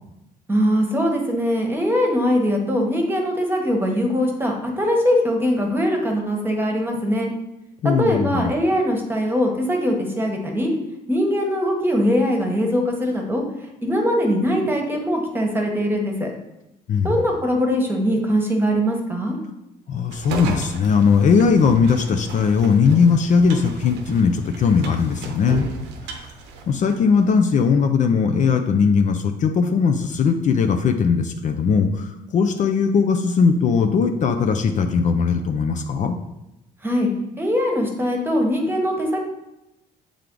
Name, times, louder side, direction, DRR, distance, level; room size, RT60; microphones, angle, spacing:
voice 1, 0.5-7.3 8.0-10.7 11.1-13.4 13.8-16.3 17.0-19.4 36.8-37.1 37.4-39.2, equal, 10° right, 1 dB, 1.2 m, -21 dB
voice 2, 7.8-8.5 16.9-17.2 19.9-25.7 26.1-26.2 26.7-36.2, left 5 dB, 45° left, 6 dB, 0.5 m, -19 dB
sound 1, 20.1-27.3, right 4 dB, 90° right, 0.8 m, -35 dB
7.4 x 3.4 x 3.8 m, 0.93 s
cardioid pair, 110°, 17 cm